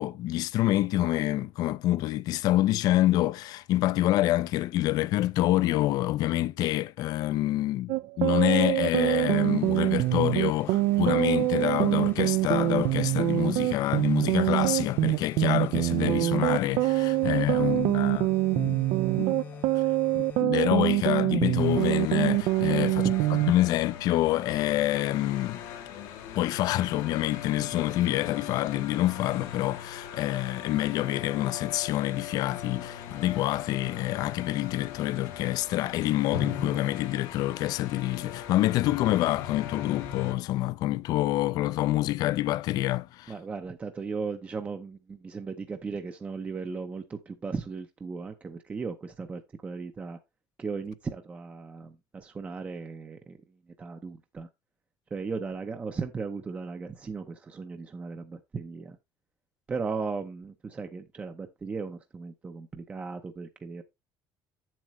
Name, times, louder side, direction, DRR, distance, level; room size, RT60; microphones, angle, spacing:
voice 1, 0.0-18.8 19.2-19.4 19.7-19.8 20.1-23.1 23.5-25.6 26.3-43.3, left 15 dB, 55° left, 0.4 m, -27 dB
sound 1, 7.9-23.5, right 18 dB, 75° right, 0.5 m, -25 dB
sound 2, 9.0-20.5, left 7 dB, 30° left, 0.8 m, -44 dB
sound 3, 21.6-40.3, left 8 dB, 80° left, 1.5 m, -40 dB
voice 2, 22.6-23.2 43.3-50.2 50.6-53.4 53.8-54.5 55.1-59.0 59.7-63.8, right 4 dB, 20° right, 0.6 m, -36 dB
8.1 x 7.5 x 3.1 m
cardioid pair, 165°, 8 cm